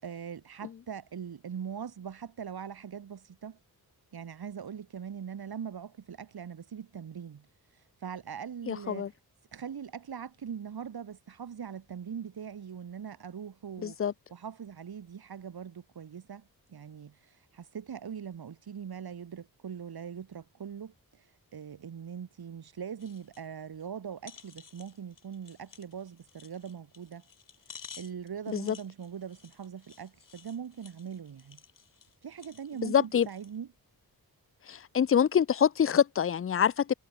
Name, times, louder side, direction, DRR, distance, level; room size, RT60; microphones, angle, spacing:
voice 1, 0.0-3.6 4.1-7.5 7.7-9.1 9.5-14.0 14.3-21.3 21.5-27.2 28.0-31.6 32.2-33.7, right 7 dB, 75° right, 5.3 m, -41 dB
voice 2, 8.7-9.1 13.8-14.1 28.5-28.8 32.8-33.3 34.7-36.9, left 8 dB, 35° left, 0.5 m, -25 dB
sound 1, 23.0-23.5 23.8-23.9 24.2-33.6 34.1-34.2, left 6 dB, 55° left, 7.5 m, -53 dB
wide cardioid pair, 155°, 38 cm